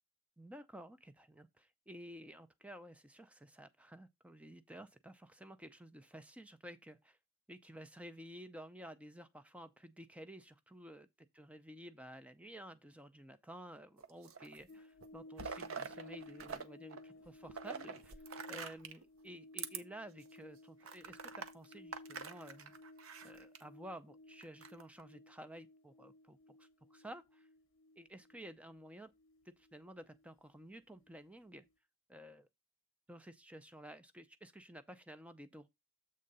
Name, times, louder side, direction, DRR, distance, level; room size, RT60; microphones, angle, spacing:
voice 1, 0.4-7.2 7.5-11.1 11.3-18.1 18.5-22.8 23.2-27.5 28.0-29.1 29.5-31.6 32.1-32.5 33.1-35.7, equal, 5° right, 0.5 m, -53 dB
sound 1, 14.0-14.7 15.0-16.6 16.9-19.0 19.5-19.8 20.3-20.4 20.8-23.6 24.4-25.0, right 5 dB, 80° right, 0.8 m, -46 dB
sound 2, 14.7-31.2 31.5-31.7, left 2 dB, 65° left, 0.8 m, -57 dB
7.7 x 3.6 x 5.4 m
head